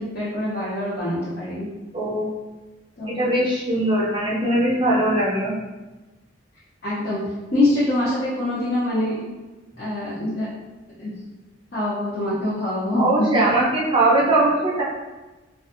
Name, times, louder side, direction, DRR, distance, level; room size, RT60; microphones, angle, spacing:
voice 1, 0.0-1.7 3.0-3.3 6.8-7.2 7.5-9.2 9.8-10.5 11.0-11.1 11.7-13.4, left 1 dB, 50° left, -11 dB, 0.6 m, -24 dB
voice 2, 1.9-2.3 3.1-5.5 13.0-14.8, right 1 dB, 25° right, -6 dB, 0.6 m, -20 dB
2.5 x 2.4 x 2.4 m, 1.2 s
head